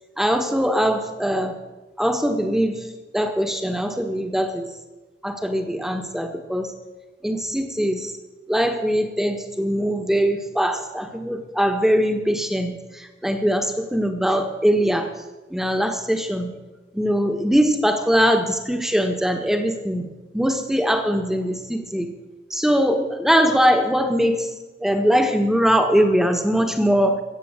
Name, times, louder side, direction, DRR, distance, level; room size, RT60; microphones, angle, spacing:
voice 1, 0.2-1.6 2.0-2.8 3.1-4.7 5.2-6.7 7.2-8.1 8.5-15.1 15.5-16.5 16.9-20.1 20.3-22.1 22.5-24.5 24.8-27.2, equal, ahead, 5 dB, 1.3 m, -21 dB
15.5 x 7.4 x 8.8 m, 1.2 s
head